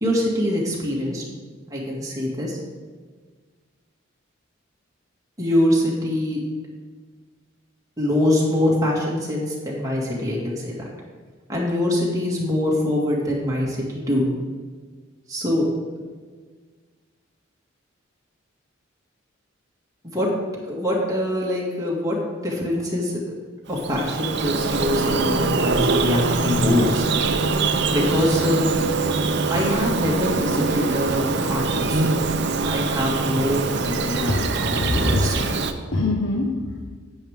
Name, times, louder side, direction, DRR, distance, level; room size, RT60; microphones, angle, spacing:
voice 1, 0.0-1.2 1.7-2.6 5.4-6.4 8.0-10.8 11.5-14.3 15.3-15.7 20.0-20.3 20.7-22.2 22.4-23.2 23.7-27.0 27.9-28.7 29.5-32.1 32.6-35.3, left 1 dB, 20° right, -4 dB, 2.2 m, -24 dB
Bird vocalization bird call bird song, 23.7-35.7, right 3 dB, 60° right, 0.7 m, -23 dB
voice 2, 34.3-36.8, left 2 dB, 85° left, 0 dB, 1.2 m, -25 dB
10.5 x 8.8 x 3.7 m, 1.5 s
head